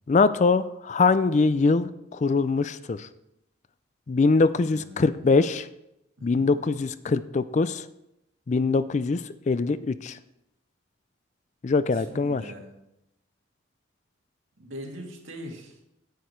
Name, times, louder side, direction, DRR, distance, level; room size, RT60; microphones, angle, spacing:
voice 1, 0.1-3.1 4.1-5.7 6.2-7.8 8.5-10.2 11.6-12.4, left 4 dB, 35° left, 14 dB, 0.4 m, -23 dB
voice 2, 4.6-5.2 6.2-6.6 11.9-12.7 14.6-15.8, equal, 80° right, 1 dB, 2.1 m, -42 dB
9.3 x 8.6 x 4.5 m, 0.86 s
head